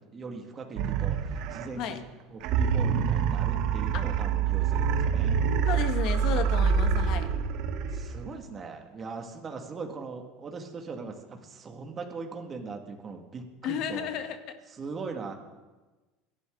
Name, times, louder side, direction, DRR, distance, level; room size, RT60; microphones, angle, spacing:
voice 1, 0.1-2.0 2.3-5.4 7.9-14.1 14.8-15.3, right 4 dB, 25° right, 3 dB, 2.2 m, -40 dB
sound 1, 0.8-1.9 2.4-8.4, right 7 dB, 60° right, 1.2 m, -26 dB
voice 2, 5.6-7.3 13.6-14.5, left 9 dB, 60° left, 7 dB, 1.7 m, -32 dB
28.0 x 11.5 x 4.0 m, 1.2 s
supercardioid pair, 130°, 0 cm